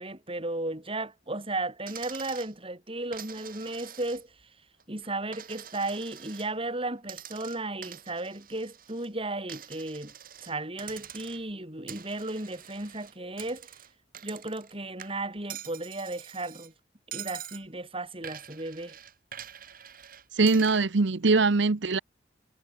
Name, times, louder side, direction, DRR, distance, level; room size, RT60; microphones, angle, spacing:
voice 1, 0.0-4.3 4.9-10.1 10.4-13.7 14.2-16.7 17.1-19.0, right 2 dB, 30° right, 5.6 m, -35 dB
Coin (dropping), 1.9-2.5 3.1-4.4 4.8-6.5 7.0-9.1 9.5-10.5 10.8-11.5 11.9-14.7 15.0-16.7 17.1-17.6 18.2-20.8, right 10 dB, 50° right, 5.7 m, -45 dB
voice 2, 20.3-22.0, right 3 dB, 85° right, 0.8 m, -22 dB
head